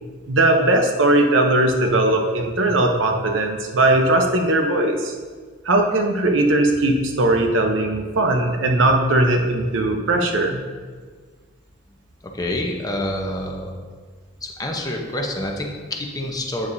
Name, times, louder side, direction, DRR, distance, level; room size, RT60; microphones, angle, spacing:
voice 1, 0.3-5.1 5.6-10.6, right 2 dB, 80° right, 3 dB, 0.8 m, -19 dB
voice 2, 12.3-13.7 14.4-16.7, left 1 dB, 20° left, 0 dB, 0.9 m, -27 dB
8.9 x 6.9 x 2.7 m, 1.5 s
head